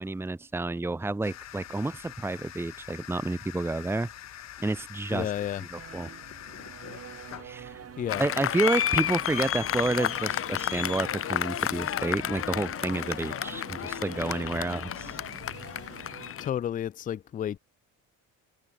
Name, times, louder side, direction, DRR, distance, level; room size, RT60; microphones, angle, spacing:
voice 1, 0.0-4.1 4.6-5.3 5.6-6.1 7.4-7.8 8.2-15.2, right 2 dB, 10° right, 1.0 m, -30 dB
sound 1, 1.2-16.1, left 12 dB, 65° left, 2.3 m, -48 dB
voice 2, 5.1-5.6 8.0-8.2 16.4-17.6, left 10 dB, 30° left, 0.4 m, -31 dB
sound 2, 5.7-16.3, right 9 dB, 50° right, 6.6 m, -47 dB
Applause, 8.1-16.5, left 10 dB, 50° left, 1.1 m, -31 dB
cardioid pair, 125°, 29 cm